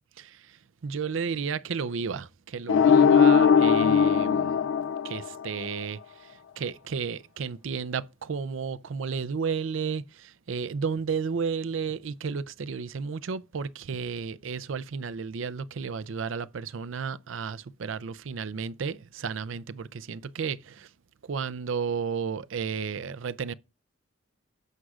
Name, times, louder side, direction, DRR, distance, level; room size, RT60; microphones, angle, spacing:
voice 1, 0.2-4.6 5.0-20.9 21.3-23.5, right 5 dB, 75° right, 0.5 m, -33 dB
sound 1, 2.7-5.7, left 6 dB, 70° left, 0.4 m, -19 dB
16.0 x 6.2 x 2.4 m
head